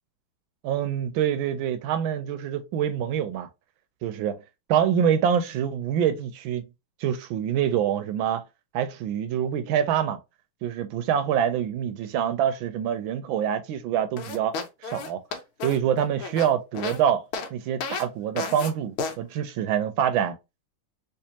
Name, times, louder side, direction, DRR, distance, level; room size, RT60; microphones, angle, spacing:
voice 1, 0.6-3.5 4.0-4.4 4.7-6.6 7.0-8.4 8.7-10.2 10.6-14.6 14.8-15.2 15.6-17.2 17.5-20.3, right 9 dB, 75° right, 1.3 m, -25 dB
sound 1, 14.2-17.0 17.3-17.5 17.8-18.1 18.4-18.7 19.0-19.2, left 4 dB, 80° left, 1.5 m, -32 dB
3.4 x 3.0 x 2.8 m
omnidirectional pair, 2.3 m